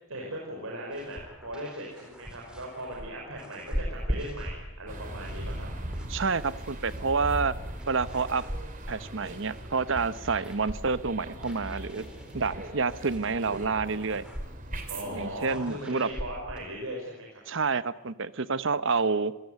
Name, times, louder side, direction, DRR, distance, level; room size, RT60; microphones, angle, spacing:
voice 1, 0.1-5.7 14.9-17.4, right 1 dB, 85° right, -1 dB, 5.6 m, -38 dB
sound 1, 0.9-16.6, equal, 5° right, 4.0 m, -41 dB
sound 2, 4.9-15.5, right 1 dB, 40° right, 3.2 m, -40 dB
voice 2, 6.1-7.5 7.9-8.4 8.9-12.1 12.3-14.3 15.2-16.1 17.5-19.3, right 4 dB, 60° right, 14 dB, 1.0 m, -28 dB
27.5 x 16.5 x 9.5 m, 0.95 s
head